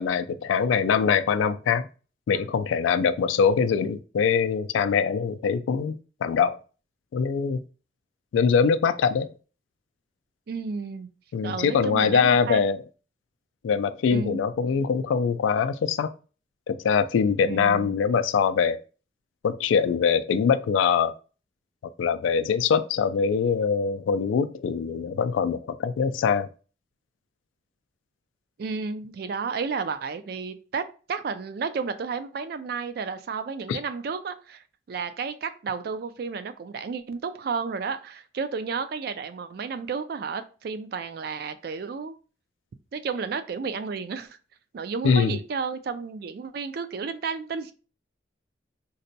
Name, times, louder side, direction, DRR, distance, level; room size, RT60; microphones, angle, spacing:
voice 1, 0.0-1.9 2.3-6.6 7.1-7.6 8.3-9.3 11.3-12.8 13.6-16.1 16.7-18.8 19.4-21.1 22.0-26.5 33.7-33.8 45.0-45.4, left 6 dB, 90° left, 0.3 m, -23 dB
voice 2, 10.5-11.1 11.4-12.6 14.1-14.4 17.4-18.0 28.6-42.2 42.9-44.4 44.7-47.7, right 5 dB, 55° right, 0.3 m, -32 dB
3.9 x 2.2 x 2.7 m
head